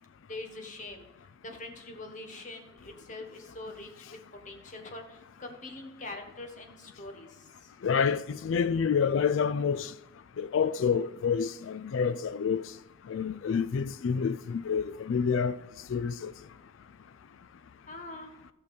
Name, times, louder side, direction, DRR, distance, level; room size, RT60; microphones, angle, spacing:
voice 1, 0.3-1.0 1.4-3.9 4.4-7.3 17.9-18.3, left 2 dB, 40° left, 1.4 m, -43 dB
voice 2, 7.8-9.9 10.4-12.7 13.1-15.6 15.9-16.3, left 6 dB, 75° left, 0.4 m, -28 dB
13.0 x 6.6 x 5.3 m
head